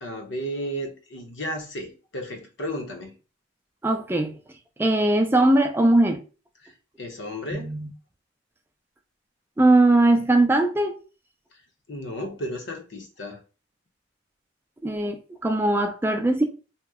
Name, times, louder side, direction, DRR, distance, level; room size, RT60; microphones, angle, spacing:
voice 1, 0.0-3.1 6.6-6.7 7.0-7.8 11.9-13.4, equal, 65° left, 0.8 m, -33 dB
voice 2, 3.8-4.3 4.8-6.2 7.5-7.9 9.6-11.0 14.8-16.4, right 2 dB, 10° right, 0.4 m, -20 dB
2.8 x 2.0 x 3.5 m
head